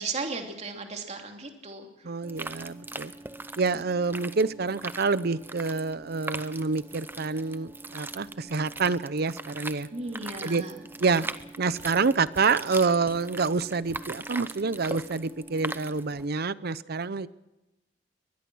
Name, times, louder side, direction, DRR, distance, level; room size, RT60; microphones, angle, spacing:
voice 1, 0.0-2.1 9.9-10.8 11.1-11.3, right 3 dB, 35° right, 3 dB, 2.9 m, -36 dB
voice 2, 2.0-3.1 3.6-9.9 10.4-10.6 11.0-11.3 11.6-17.3, right 4 dB, 55° right, 17 dB, 0.7 m, -27 dB
sound 1, 2.2-16.3, right 2 dB, 10° right, 0.7 m, -40 dB
23.5 x 20.5 x 6.2 m, 1.0 s
head